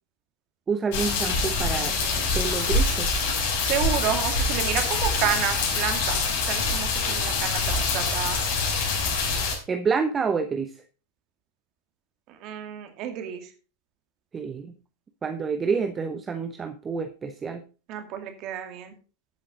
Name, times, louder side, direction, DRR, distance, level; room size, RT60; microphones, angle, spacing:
voice 1, 0.7-2.0 2.3-3.1 9.7-10.7 14.3-14.7 15.2-17.6, right 5 dB, 20° right, 9 dB, 0.9 m, -28 dB
sound 1, 0.9-9.6, left 3 dB, 50° left, 4.4 m, -25 dB
voice 2, 3.6-8.4 12.3-13.5 17.9-18.9, right 9 dB, 40° right, 7 dB, 2.4 m, -30 dB
11.5 x 8.8 x 3.8 m, 0.33 s
figure-of-eight pair, 90°, 0 cm